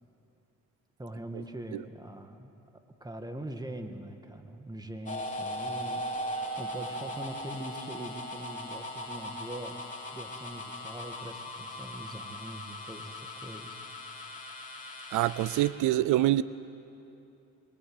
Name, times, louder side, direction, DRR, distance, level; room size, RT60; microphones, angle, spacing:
voice 1, 1.0-2.5 3.0-13.8, right 1 dB, 15° right, 6 dB, 2.1 m, -42 dB
sound 1, 5.1-15.7, equal, 25° left, 3.6 m, -39 dB
voice 2, 15.1-16.4, right 14 dB, 85° right, 17 dB, 0.6 m, -25 dB
25.0 x 22.5 x 8.1 m, 2.8 s
cardioid pair, 90°, 30 cm